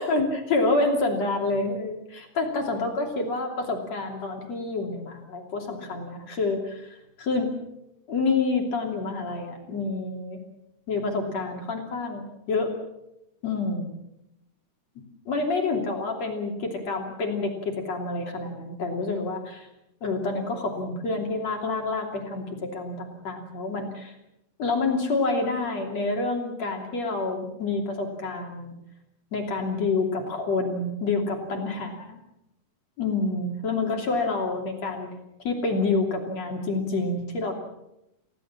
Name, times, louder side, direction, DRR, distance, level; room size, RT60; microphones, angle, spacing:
voice 1, 0.0-7.5 8.1-10.4 10.9-12.7 13.4-13.9 15.3-19.7 20.0-24.2 24.6-28.7 29.3-32.2 33.0-35.2 35.4-37.5, left 3 dB, 55° left, 2 dB, 4.1 m, -28 dB
30.0 x 16.5 x 7.4 m, 0.88 s
omnidirectional pair, 3.8 m